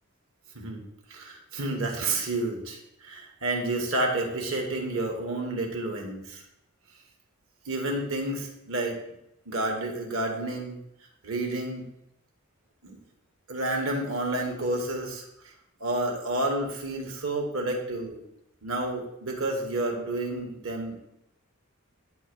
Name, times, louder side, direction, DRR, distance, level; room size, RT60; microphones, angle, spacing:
voice 1, 1.1-6.4 7.7-9.0 9.5-10.8 11.2-11.9 12.8-13.0 13.5-15.2 15.8-18.2 18.6-21.0, right 2 dB, 65° right, 2 dB, 1.8 m, -30 dB
10.5 x 3.6 x 6.9 m, 0.83 s
head